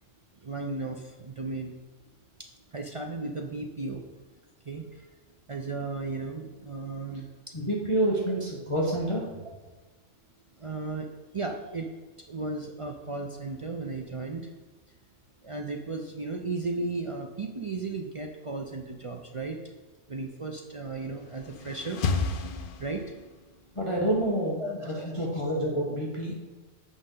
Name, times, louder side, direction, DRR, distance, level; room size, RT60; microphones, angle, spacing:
voice 1, 0.3-1.8 2.4-4.1 4.6-5.1 5.5-7.6 10.6-11.1 11.3-11.9 12.2-14.5 14.9-15.0 15.4-19.7 20.1-22.2 22.8-23.2 24.6-25.5, right 3 dB, 55° right, 2 dB, 0.3 m, -35 dB
voice 2, 7.5-9.3 23.7-26.3, right 1 dB, 25° left, -3 dB, 1.0 m, -28 dB
sound 1, 21.0-23.4, left 4 dB, 55° left, 0.6 m, -32 dB
8.1 x 5.3 x 3.8 m, 1.3 s
omnidirectional pair, 1.3 m